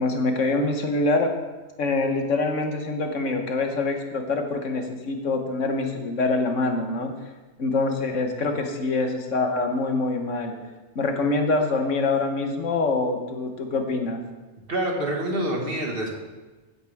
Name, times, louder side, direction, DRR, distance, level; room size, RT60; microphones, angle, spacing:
voice 1, 0.0-1.3 1.8-7.1 7.6-10.5 10.9-14.2, left 3 dB, 75° left, 5 dB, 1.5 m, -25 dB
voice 2, 14.7-16.1, right 1 dB, 45° right, 0 dB, 2.0 m, -26 dB
15.5 x 8.3 x 3.5 m, 1.2 s
omnidirectional pair, 1.3 m